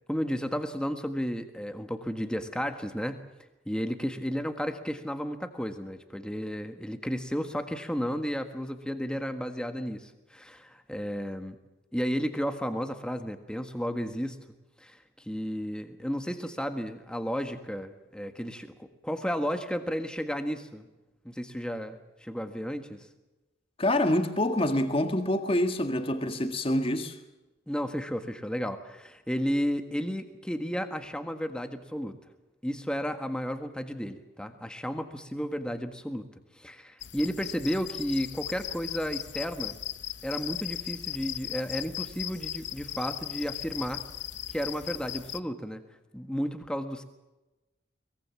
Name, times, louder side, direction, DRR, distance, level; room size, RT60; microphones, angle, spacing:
voice 1, 0.1-3.2 3.6-11.6 11.9-14.4 14.8-18.7 19.0-20.8 21.2-23.0 27.7-32.1 32.6-36.3 36.6-39.8 40.2-44.0 44.5-45.8 46.1-47.0, equal, 5° left, 1.6 m, -33 dB
voice 2, 23.8-27.2, left 1 dB, 30° left, 1.8 m, -26 dB
sound 1, 37.0-45.4, left 13 dB, 60° left, 0.7 m, -38 dB
23.0 x 21.5 x 7.3 m
head